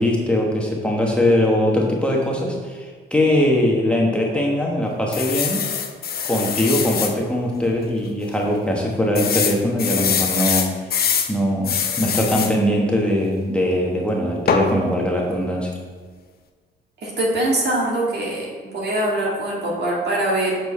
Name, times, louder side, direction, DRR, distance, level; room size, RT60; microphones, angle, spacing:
voice 1, 0.0-5.6 6.2-10.7 11.3-15.7, left 1 dB, 5° left, -2 dB, 1.1 m, -21 dB
sound 1, 5.1-7.1 7.7-7.8 8.1-8.2 9.2-11.3 11.6-12.5 14.5-14.7, left 7 dB, 50° left, 0.7 m, -23 dB
voice 2, 17.0-20.5, right 1 dB, 55° right, -3 dB, 2.0 m, -23 dB
7.0 x 4.4 x 4.2 m, 1.5 s
cardioid pair, 90°, 20 cm